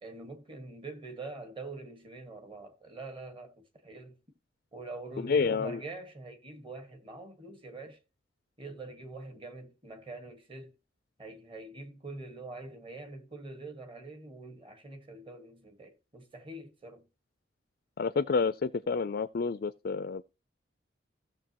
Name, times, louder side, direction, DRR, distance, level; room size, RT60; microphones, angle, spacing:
voice 1, 0.0-4.2 4.7-8.0 8.6-10.7 11.2-17.1, right 2 dB, 30° right, 1.6 m, -44 dB
voice 2, 5.2-5.8 18.0-20.2, left 4 dB, 55° left, 0.4 m, -29 dB
16.0 x 6.6 x 2.9 m
head